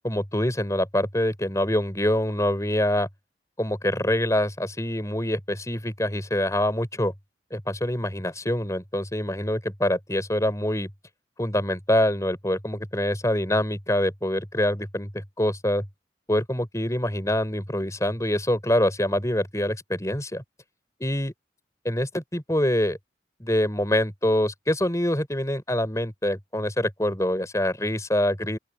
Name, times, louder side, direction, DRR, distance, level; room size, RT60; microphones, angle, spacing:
voice 1, 0.0-3.1 3.6-7.1 7.5-10.9 11.4-15.9 16.3-20.4 21.0-21.3 21.8-23.0 23.4-28.6, left 1 dB, 15° left, 4.4 m, -25 dB
open air
head